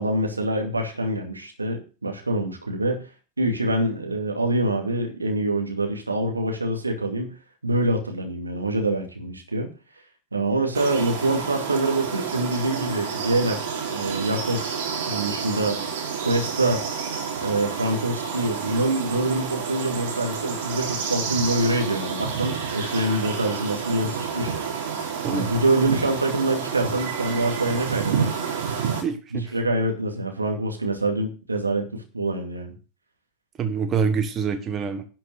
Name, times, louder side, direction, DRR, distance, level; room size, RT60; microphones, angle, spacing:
voice 1, 0.0-3.1 3.4-7.3 7.6-9.7 10.3-13.6 13.9-15.8 16.2-16.8 17.4-24.5 25.3-28.3 29.3-32.7, right 1 dB, 80° right, 3 dB, 2.4 m, -25 dB
sound 1, 10.8-29.0, right 6 dB, 55° right, 3.1 m, -29 dB
voice 2, 29.0-29.5 33.6-35.0, right 6 dB, 25° right, 7 dB, 1.5 m, -26 dB
11.0 x 6.0 x 6.5 m, 0.35 s
figure-of-eight pair, 90°, 0 cm